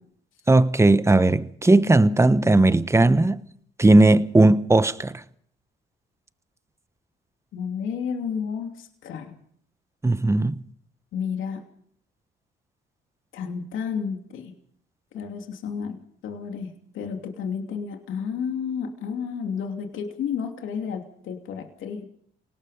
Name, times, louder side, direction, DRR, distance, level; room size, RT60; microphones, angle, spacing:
voice 1, 0.5-3.4 3.8-5.2 10.0-10.6, right 2 dB, 15° right, 1.1 m, -17 dB
voice 2, 7.5-9.3 11.1-11.7 13.3-14.5 15.1-22.0, left 6 dB, 80° left, 2.9 m, -31 dB
28.0 x 18.5 x 5.1 m
cardioid pair, 90°, 20 cm